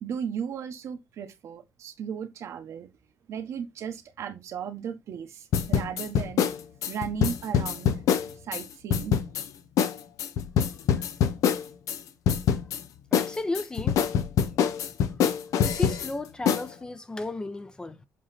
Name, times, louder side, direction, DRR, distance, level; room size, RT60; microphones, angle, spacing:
voice 1, 0.0-2.9 3.3-6.4 6.9-8.0 8.4-9.2, right 8 dB, 65° right, 1.2 m, -35 dB
sound 1, 5.5-8.6 8.9-9.5 9.8-9.9 10.2-12.0 12.3-12.8 13.1-16.1 16.5-16.6, left 8 dB, 80° left, 0.8 m, -24 dB
voice 2, 13.1-14.0 15.6-18.1, left 2 dB, 15° left, 0.6 m, -34 dB
7.6 x 3.1 x 4.2 m
cardioid pair, 140°, 5 cm